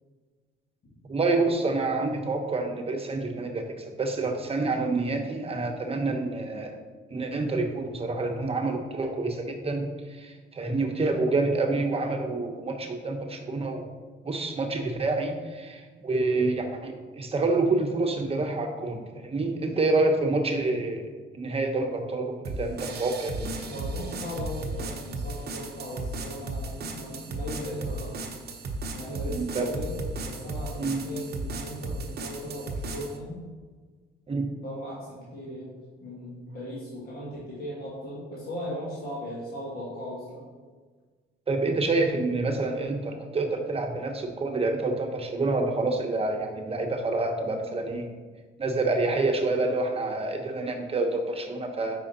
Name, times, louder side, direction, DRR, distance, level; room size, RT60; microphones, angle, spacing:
voice 1, 1.1-3.6 4.0-6.8 7.1-13.9 14.2-21.0 21.3-23.5 29.3-29.7 30.8-31.0 34.3-34.5 41.5-48.1 48.6-52.0, right 3 dB, 30° right, 3 dB, 1.0 m, -27 dB
sound 1, 22.4-33.2, right 2 dB, 55° right, 0.8 m, -35 dB
voice 2, 23.7-28.1 28.9-30.0 30.2-33.4 34.6-40.5, equal, 50° left, -7 dB, 1.8 m, -38 dB
5.1 x 4.9 x 4.0 m, 1.4 s
cardioid pair, 90°, 20 cm